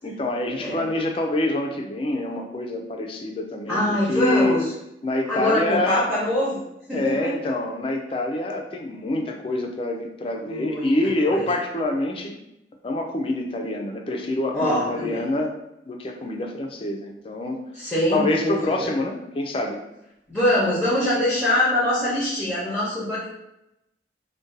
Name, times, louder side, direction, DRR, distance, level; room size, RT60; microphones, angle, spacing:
voice 1, 0.0-4.6 5.0-6.1 6.9-12.4 12.8-15.6 15.9-17.6 18.1-19.8, left 2 dB, 30° left, 2 dB, 0.4 m, -26 dB
voice 2, 3.7-4.7 5.3-6.6 6.9-7.5 10.5-11.0 11.3-11.5 14.5-15.2 17.7-18.9 20.3-23.3, left 1 dB, 5° left, -9 dB, 0.7 m, -23 dB
2.6 x 2.2 x 3.8 m, 0.86 s
head